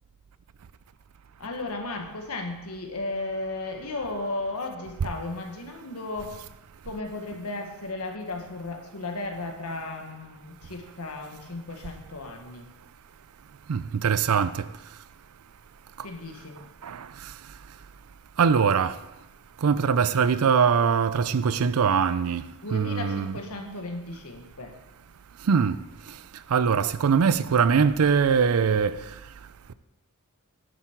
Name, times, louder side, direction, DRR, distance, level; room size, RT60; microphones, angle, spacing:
voice 1, 1.4-6.3 6.8-12.7 16.0-16.6 22.6-24.7, left 2 dB, 80° left, 1.5 m, -35 dB
voice 2, 13.7-14.7 16.8-17.3 18.4-19.0 19.6-22.4 22.7-23.8 25.4-25.8 26.1-26.2 26.5-29.2, right 6 dB, 70° right, 0.5 m, -22 dB
10.5 x 7.6 x 4.6 m
head